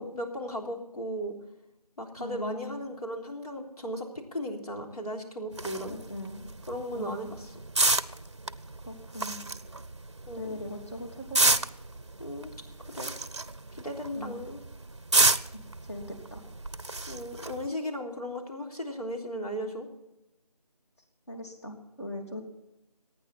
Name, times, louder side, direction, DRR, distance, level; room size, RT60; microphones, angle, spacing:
voice 1, 0.0-1.3 2.0-6.0 6.7-7.5 10.3-10.6 12.2-12.5 12.9-13.1 13.7-14.6 17.1-19.9, equal, 70° left, 1 dB, 3.6 m, -36 dB
voice 2, 2.2-2.9 5.8-6.5 6.9-7.3 8.8-9.5 10.3-11.6 14.1-14.4 15.9-16.4 21.3-22.4, left 1 dB, 45° left, 1 dB, 3.2 m, -40 dB
sound 1, 5.5-17.7, right 2 dB, 45° right, 0.6 m, -31 dB
26.0 x 9.4 x 4.1 m, 0.91 s
figure-of-eight pair, 170°, 20 cm